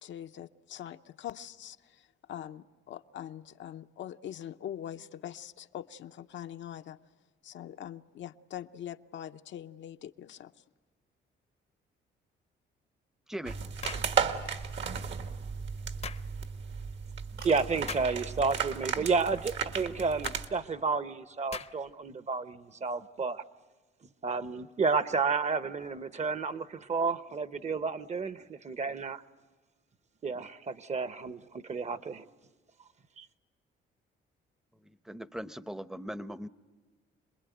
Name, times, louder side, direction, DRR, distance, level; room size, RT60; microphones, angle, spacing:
voice 1, 0.0-7.0 7.4-10.5, left 10 dB, 70° left, 0.8 m, -43 dB
sound 1, 13.5-20.5, right 6 dB, 65° right, 1.7 m, -35 dB
sound 2, 13.8-14.1 16.0-16.3 17.9-18.2 20.2-20.4 21.5-21.9, left 5 dB, 35° left, 0.7 m, -40 dB
sound 3, 15.6-15.9 16.3-16.5 16.9-17.0 17.1-17.2 17.4-17.7 18.7-19.0 19.3-19.7, right 4 dB, 85° right, 6.3 m, -50 dB
voice 2, 17.4-23.4 24.2-29.2 30.2-32.2 33.2-33.3, right 4 dB, 35° right, 0.9 m, -31 dB
voice 3, 34.8-36.5, equal, ahead, 0.7 m, -40 dB
27.0 x 21.0 x 9.2 m
cardioid pair, 90°, 20 cm